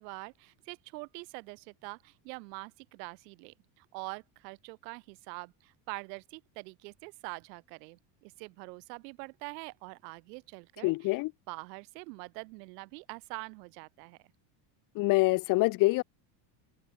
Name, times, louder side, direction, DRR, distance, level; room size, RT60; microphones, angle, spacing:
voice 1, 0.0-11.2 11.5-14.2, right 30 dB, 75° right, 3.2 m, -44 dB
voice 2, 10.8-11.3 14.9-16.0, left 22 dB, 40° left, 0.7 m, -25 dB
cardioid pair, 155°, 50 cm